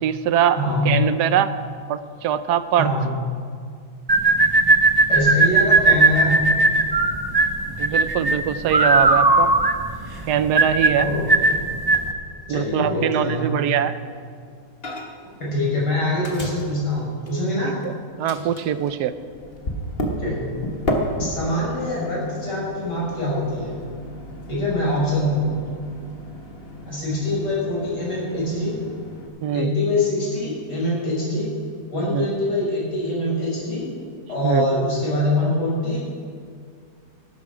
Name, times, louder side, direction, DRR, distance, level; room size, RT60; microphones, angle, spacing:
voice 1, 0.0-0.6 0.8-1.5 1.9-2.9 7.8-9.5 10.3-11.1 12.5-13.9 17.6-17.9 18.2-19.2 29.4-29.7 32.1-32.3 34.4-34.7, right 10 dB, 75° right, 13 dB, 1.1 m, -22 dB
voice 2, 0.6-0.9 2.8-3.0 5.1-6.4 11.0-11.2 12.5-13.5 15.4-17.7 20.2-20.4 21.2-23.7 24.5-25.5 26.9-28.8 29.5-31.5 31.9-33.8 34.3-36.1, left 1 dB, 75° left, -5 dB, 5.6 m, -24 dB
sound 1, 4.1-12.1, right 2 dB, 40° right, 0.3 m, -17 dB
Microwave oven, 14.8-15.3 15.6-17.9 18.3-29.3, equal, 35° left, 1.5 m, -33 dB
16.5 x 12.5 x 5.0 m, 2.1 s
omnidirectional pair, 1.9 m